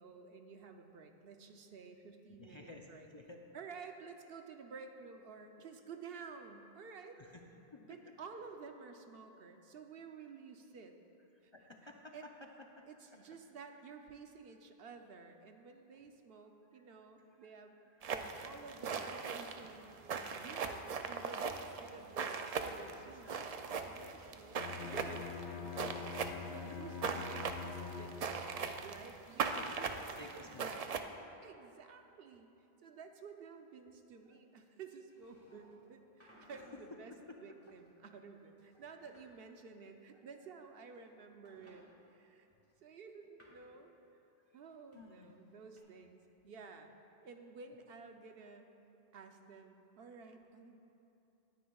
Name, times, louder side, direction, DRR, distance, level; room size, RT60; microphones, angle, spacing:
voice 1, 0.0-3.1 3.5-7.2 7.8-10.9 11.4-11.5 12.1-12.2 12.9-17.8 18.4-30.8 31.4-32.5 32.8-37.1 37.4-42.5 42.8-43.9 44.5-48.7 49.1-50.8, right 5 dB, 70° right, 5 dB, 0.9 m, -52 dB
voice 2, 2.4-3.4 7.1-8.1 11.5-13.5 16.3-16.4 16.7-16.8 17.3-18.1 19.9-20.2 23.2-23.5 23.9-24.0 28.2-28.3 29.3-29.8 30.1-31.1 32.1-32.2 34.3-34.4 37.1-37.4 37.7-37.8 38.3-38.4 38.7-39.1 41.5-41.6 44.5-44.6 44.9-45.3, left 2 dB, 35° left, 1 dB, 0.5 m, -57 dB
sound 1, 18.0-31.0, right 5 dB, 50° right, 0.4 m, -40 dB
Bowed string instrument, 24.5-28.6, left 6 dB, 80° left, 1.0 m, -45 dB
sound 2, 35.0-35.9 36.2-36.8 37.6-38.3 38.6-39.3 40.5-41.1 41.4-41.8 42.6-43.7 44.9-45.8, equal, 15° left, 1.9 m, -64 dB
19.0 x 9.4 x 2.3 m, 2.9 s
omnidirectional pair, 1.1 m